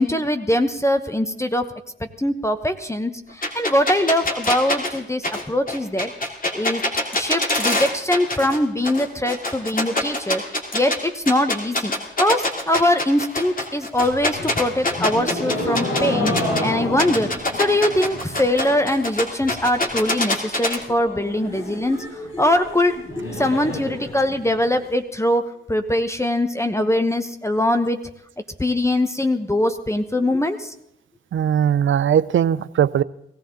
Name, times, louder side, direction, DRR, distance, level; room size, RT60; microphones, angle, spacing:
voice 1, 0.0-1.7 2.0-6.1 6.5-6.8 7.1-10.4 10.7-16.3 16.6-28.0 28.6-30.7, left 1 dB, 15° left, 8 dB, 1.1 m, -22 dB
sound 1, 3.4-8.6 8.8-11.0 11.3-16.6 17.0-20.8, left 2 dB, 40° left, 2.9 m, -24 dB
sound 2, 13.9-19.0 19.3-19.8 20.1-20.2 20.4-20.5 20.8-24.8, left 1 dB, 80° left, 4.6 m, -30 dB
voice 2, 31.3-33.0, right 9 dB, 65° right, 18 dB, 0.5 m, -19 dB
18.0 x 15.0 x 3.9 m, 0.75 s
cardioid pair, 50°, 21 cm